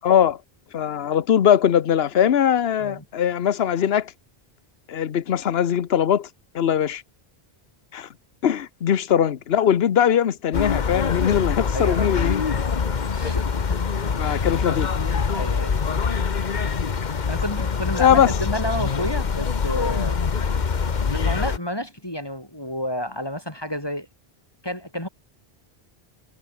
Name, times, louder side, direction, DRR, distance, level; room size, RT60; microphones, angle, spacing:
voice 1, 0.0-0.4 0.7-4.1 4.9-6.3 6.5-7.0 7.9-8.1 8.4-12.4 14.2-14.9 18.0-18.3, left 9 dB, 75° left, 1.1 m, -20 dB
sound 1, 10.5-21.6, left 5 dB, 45° left, 1.1 m, -24 dB
voice 2, 11.7-12.3 13.1-13.8 14.2-14.4 15.3-15.8 17.3-20.2 21.1-24.1 24.6-25.1, equal, 25° left, 4.5 m, -30 dB
omnidirectional pair, 1.0 m